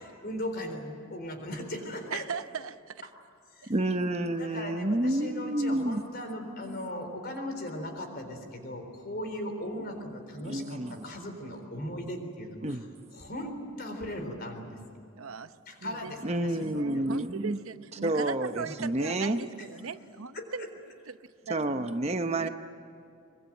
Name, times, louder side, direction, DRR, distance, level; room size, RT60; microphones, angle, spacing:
voice 1, 0.0-2.2 3.6-3.7 4.4-12.8 13.1-14.8 15.7-17.1 18.6-18.7 20.3-20.7, left 1 dB, 45° left, 5 dB, 4.0 m, -38 dB
voice 2, 2.1-3.1 15.1-20.7 21.1-21.2 21.4-21.9 22.2-22.5, right 5 dB, 75° right, 12 dB, 0.8 m, -39 dB
voice 3, 3.7-6.0 6.7-6.9 10.4-11.0 12.6-12.8 16.2-17.6 18.0-19.4 21.5-22.5, right 1 dB, 30° right, 8 dB, 0.8 m, -29 dB
23.5 x 22.5 x 9.2 m, 2.4 s
head